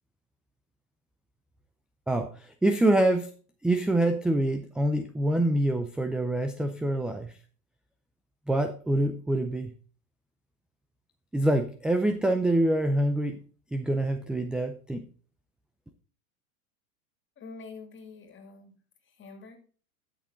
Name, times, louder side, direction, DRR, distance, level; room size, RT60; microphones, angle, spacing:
voice 1, 2.1-3.3 3.6-7.3 8.5-9.7 11.3-13.4 13.7-15.0, right 1 dB, ahead, 8 dB, 0.3 m, -26 dB
voice 2, 17.4-18.8 19.1-19.6, left 4 dB, 25° left, 6 dB, 2.6 m, -46 dB
12.0 x 6.5 x 3.8 m, 0.40 s
hypercardioid pair, 115°, 44 cm